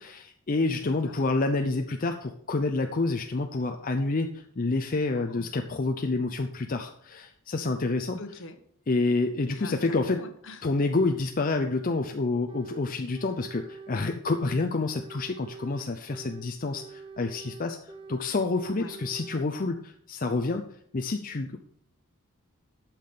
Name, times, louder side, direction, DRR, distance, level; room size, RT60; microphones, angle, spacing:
voice 1, 0.0-8.2 8.9-10.2 10.6-17.8 18.1-20.7 20.9-21.6, left 3 dB, 40° left, 5 dB, 0.6 m, -28 dB
voice 2, 0.8-1.2 5.1-5.5 8.2-8.6 9.5-10.6 18.7-19.0, left 2 dB, 60° left, 9 dB, 1.1 m, -43 dB
sound 1, 12.5-12.9 13.1-14.7 14.9-16.5 16.7-18.3 18.5-19.5, right 3 dB, 25° right, 0.8 m, -45 dB
8.8 x 5.9 x 6.7 m, 0.66 s
head